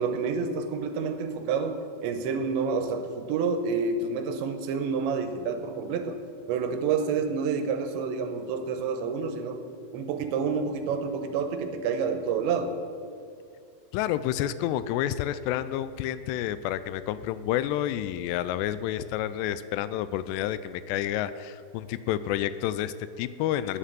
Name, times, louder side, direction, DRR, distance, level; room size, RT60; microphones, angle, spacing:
voice 1, 0.0-6.2 6.5-9.6 9.9-12.7, right 5 dB, 85° right, 7 dB, 3.1 m, -28 dB
voice 2, 13.9-23.8, left 12 dB, 85° left, 14 dB, 2.5 m, -29 dB
9.9 x 8.3 x 7.5 m, 2.5 s
omnidirectional pair, 5.2 m